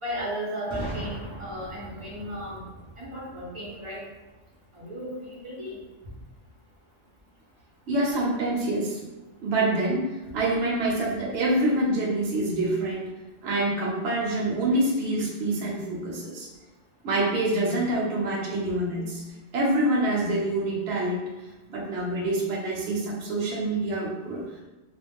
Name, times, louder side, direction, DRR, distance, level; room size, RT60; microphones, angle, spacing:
voice 1, 0.0-2.6 3.0-4.0 4.7-5.8, equal, 40° right, -5 dB, 0.4 m, -35 dB
Boom, 0.7-4.5, right 1 dB, 5° right, 0.7 m, -40 dB
voice 2, 7.9-9.0 9.4-10.0 10.3-13.0 13.4-16.5 17.0-19.2 19.5-21.2 21.7-24.4, right 1 dB, 65° right, -4 dB, 0.8 m, -26 dB
2.4 x 2.0 x 3.3 m, 1.1 s
omnidirectional pair, 1.3 m